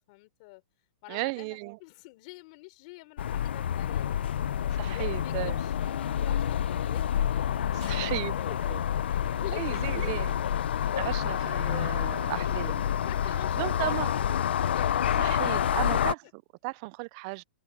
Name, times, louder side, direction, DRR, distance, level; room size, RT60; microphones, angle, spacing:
voice 1, 0.1-0.6 1.0-4.5 4.9-7.0 7.8-8.6 9.1-10.1 13.1-14.9, left 26 dB, 40° left, 4.3 m, -46 dB
voice 2, 1.1-1.8 4.8-5.6 7.7-8.3 8.7-8.8 9.3-10.4 11.0-12.8 13.6-14.1 15.2-17.4, right 27 dB, 35° right, 0.4 m, -35 dB
sound 1, 3.2-16.1, left 9 dB, 80° left, 0.5 m, -28 dB
open air
hypercardioid pair, 155°, 6 cm